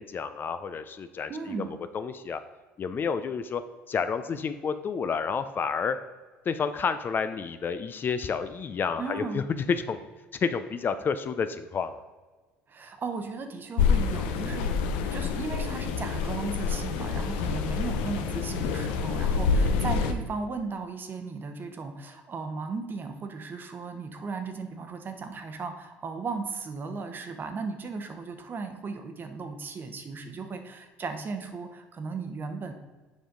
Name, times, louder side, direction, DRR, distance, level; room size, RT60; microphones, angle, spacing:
voice 1, 0.0-1.7 1.9-2.4 2.8-6.0 6.5-9.4 9.7-10.0 10.3-12.0, left 6 dB, 40° left, 11 dB, 0.4 m, -30 dB
voice 2, 1.3-1.7 9.0-9.4 12.7-14.8 15.0-32.7, right 4 dB, 40° right, 7 dB, 0.9 m, -36 dB
sound 1, 13.8-20.1, left 5 dB, 85° left, 0.6 m, -27 dB
7.2 x 5.0 x 3.8 m, 1.3 s
supercardioid pair, 80°, 6 cm